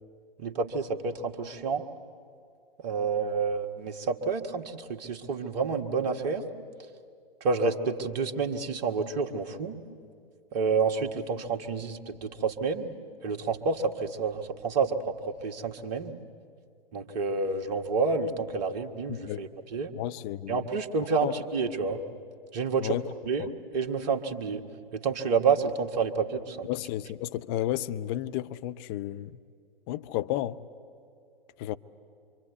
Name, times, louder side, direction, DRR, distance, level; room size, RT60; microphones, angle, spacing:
voice 1, 0.4-1.8 2.8-6.5 7.4-9.8 10.5-12.9 13.2-16.1 16.9-19.9 20.5-22.0 22.5-23.0 23.3-23.5 23.7-24.6 24.9-26.7, right 4 dB, 45° right, 1.7 m, -29 dB
voice 2, 19.1-19.5 19.9-20.6 21.2-21.3 22.8-23.0 23.4-23.5 26.6-29.4 29.9-30.6 31.6-31.7, left 13 dB, 25° left, 0.6 m, -32 dB
26.0 x 25.5 x 8.2 m
figure-of-eight pair, 115°, 30 cm